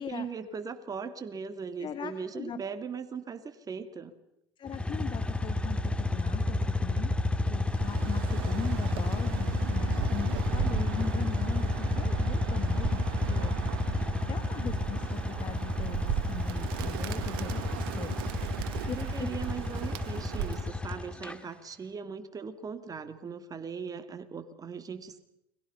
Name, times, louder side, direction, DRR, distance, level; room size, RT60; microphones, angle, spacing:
voice 1, 0.1-4.1 18.9-25.2, right 6 dB, 30° right, 9 dB, 2.6 m, -39 dB
voice 2, 1.8-2.6 4.6-7.1 7.5-18.2 18.9-19.3, left 8 dB, 40° left, 10 dB, 2.0 m, -40 dB
sound 1, 4.7-21.4, left 2 dB, 10° left, 2.3 m, -31 dB
Bird, 7.6-20.8, right 13 dB, 80° right, 1.9 m, -37 dB
30.0 x 22.0 x 5.7 m, 0.82 s
supercardioid pair, 90°, 12 cm